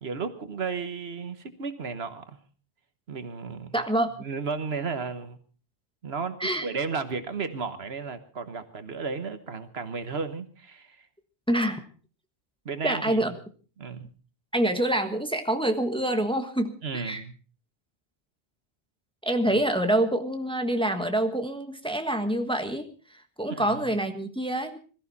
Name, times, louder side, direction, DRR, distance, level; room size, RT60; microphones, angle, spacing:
voice 1, 0.0-2.4 3.1-3.7 4.2-5.4 6.0-11.1 12.6-13.3 13.8-14.1 16.8-17.4 23.5-23.8, right 5 dB, 75° right, 1.5 m, -34 dB
voice 2, 3.7-4.1 6.4-6.7 11.5-11.8 12.8-13.3 14.5-17.2 19.2-24.8, right 1 dB, 5° left, 1.3 m, -26 dB
21.0 x 14.0 x 4.1 m
omnidirectional pair, 1.1 m